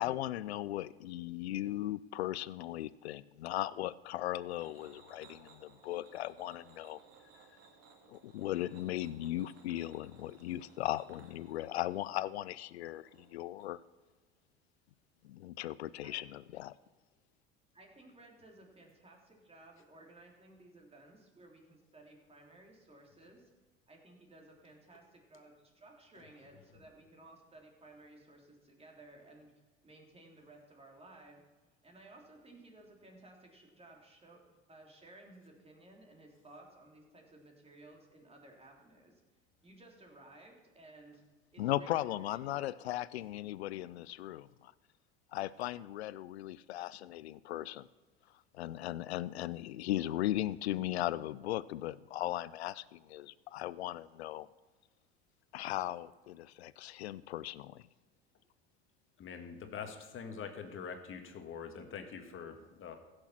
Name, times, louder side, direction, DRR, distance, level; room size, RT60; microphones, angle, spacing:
voice 1, 0.0-7.0 8.1-13.8 15.2-16.7 41.6-44.7 45.3-47.9 48.5-54.5 55.5-57.8, left 14 dB, 90° left, 19 dB, 0.5 m, -37 dB
sound 1, 3.7-13.6, right 5 dB, 50° right, 2.3 m, -62 dB
voice 2, 16.0-16.4 17.7-23.5 23.9-29.5 29.8-31.4 31.8-34.4 34.7-39.1 39.6-41.2 41.5-43.0, right 2 dB, 20° right, 0 dB, 3.4 m, -57 dB
voice 3, 59.2-63.0, left 6 dB, 40° left, 6 dB, 1.7 m, -44 dB
15.5 x 6.7 x 5.8 m, 1.3 s
hypercardioid pair, 80°, 31 cm